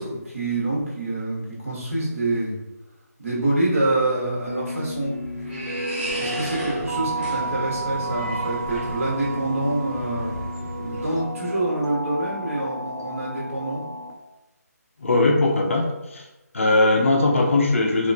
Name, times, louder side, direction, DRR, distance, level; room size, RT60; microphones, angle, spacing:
voice 1, 0.0-2.6 3.2-5.1 6.1-10.3 10.7-13.8, right 2 dB, 50° right, -6 dB, 1.5 m, -26 dB
sound 1, 4.4-9.2, right 1 dB, 35° right, 0.9 m, -35 dB
sound 2, 4.5-14.1, right 2 dB, 75° right, 0.7 m, -32 dB
sound 3, 6.3-11.3, equal, 5° right, 1.0 m, -37 dB
voice 2, 15.0-15.8 16.1-16.2 16.5-18.1, left 2 dB, 50° left, 0 dB, 0.6 m, -19 dB
3.1 x 2.9 x 2.7 m, 0.99 s
figure-of-eight pair, 170°, 9 cm